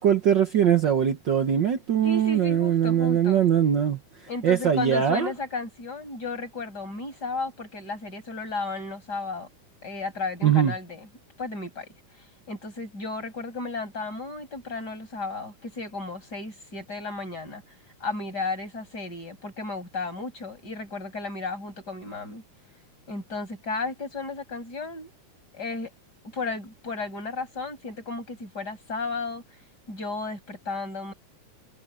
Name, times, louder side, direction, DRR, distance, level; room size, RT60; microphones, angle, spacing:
voice 1, 0.0-4.0 4.4-5.3 10.4-10.7, right 9 dB, 75° right, 1.0 m, -21 dB
voice 2, 2.0-3.4 4.3-9.5 9.8-11.1 11.4-11.9 12.5-17.6 18.0-22.4 23.1-25.1 25.5-25.9 26.3-29.4 29.9-31.1, left 3 dB, 30° left, 7.2 m, -34 dB
omnidirectional pair, 3.7 m